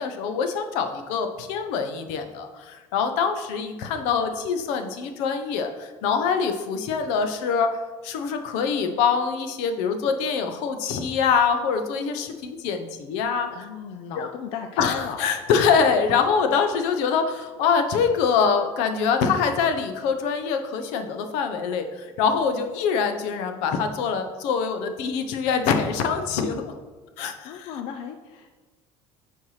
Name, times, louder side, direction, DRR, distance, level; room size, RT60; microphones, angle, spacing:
voice 1, 0.0-13.7 14.2-14.3 14.8-26.7 27.2-27.7, left 6 dB, 80° left, 7 dB, 0.8 m, -24 dB
voice 2, 13.5-15.2 27.4-28.6, left 7 dB, 60° left, 5 dB, 0.5 m, -35 dB
9.4 x 4.5 x 3.2 m, 1.3 s
cardioid pair, 165°, 11 cm